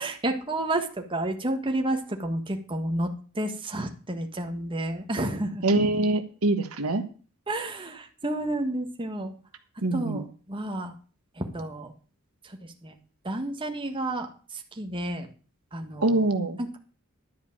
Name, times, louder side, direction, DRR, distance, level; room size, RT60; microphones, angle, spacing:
voice 1, 0.0-3.1 3.3-5.6 7.5-9.3 9.9-10.9 11.4-11.9 12.8-12.9 13.2-15.3 15.7-16.3, right 1 dB, 25° right, 4 dB, 1.5 m, -30 dB
voice 2, 5.6-7.0 9.8-10.2 16.0-16.6, right 2 dB, 75° right, 7 dB, 1.3 m, -24 dB
11.5 x 5.3 x 8.7 m, 0.39 s
head